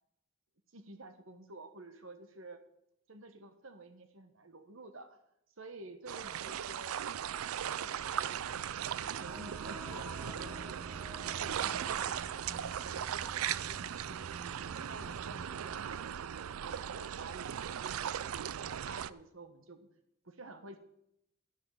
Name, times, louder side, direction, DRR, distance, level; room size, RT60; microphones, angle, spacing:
voice 1, 0.7-2.6 3.1-5.2 5.6-10.9 11.2-18.2 18.6-19.9 20.2-20.8, right 2 dB, 65° right, 9 dB, 1.4 m, -51 dB
sound 1, 6.1-19.1, right 9 dB, 85° right, 0.4 m, -38 dB
sound 2, 8.9-12.7, left 1 dB, ahead, 1.0 m, -52 dB
sound 3, 9.8-15.8, right 2 dB, 25° right, 0.5 m, -51 dB
11.5 x 11.0 x 4.9 m, 0.78 s
head